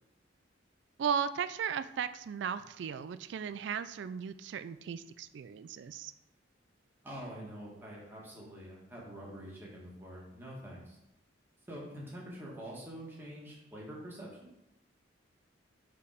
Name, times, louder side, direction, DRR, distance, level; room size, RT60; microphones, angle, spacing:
voice 1, 1.0-6.1, right 7 dB, 60° right, 12 dB, 0.3 m, -36 dB
voice 2, 7.0-11.0 11.7-14.5, equal, 10° right, -5 dB, 1.7 m, -46 dB
5.1 x 4.7 x 5.0 m, 0.87 s
head